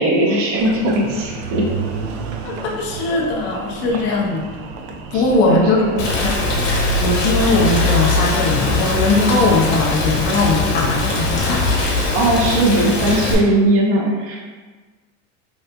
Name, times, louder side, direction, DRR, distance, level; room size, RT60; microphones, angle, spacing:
voice 1, 0.0-1.7 3.9-4.0 5.1-6.0 12.1-14.4, right 1 dB, 35° right, -2 dB, 0.5 m, -18 dB
Engine, 0.6-9.5, right 4 dB, 85° right, 0.5 m, -32 dB
voice 2, 2.4-4.4 5.1-5.8 6.2-6.3 7.0-11.7, left 3 dB, 30° left, -2 dB, 0.4 m, -19 dB
Rain, 6.0-13.4, left 2 dB, 55° left, 1.0 m, -20 dB
2.8 x 2.3 x 3.3 m, 1.4 s
supercardioid pair, 145°, 39 cm